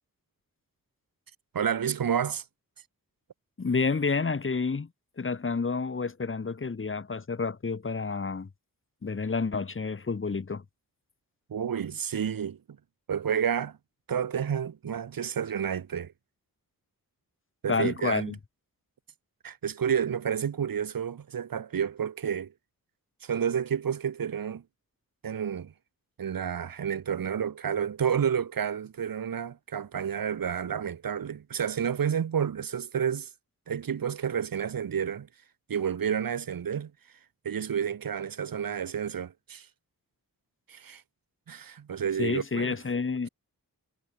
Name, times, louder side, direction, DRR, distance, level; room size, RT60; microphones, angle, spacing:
voice 1, 1.5-2.4 11.5-12.6 13.1-13.8 14.1-16.1 17.6-18.3 19.4-22.5 23.2-24.6 25.2-25.7 26.2-33.3 33.7-35.3 35.7-36.9 37.4-39.7 40.7-41.0 41.5-42.7, right 8 dB, 80° right, 1.4 m, -30 dB
voice 2, 3.6-4.9 5.2-8.5 9.0-10.6 17.7-18.4 42.2-43.3, left 4 dB, 35° left, 1.4 m, -29 dB
wide cardioid pair, 110°, 35 cm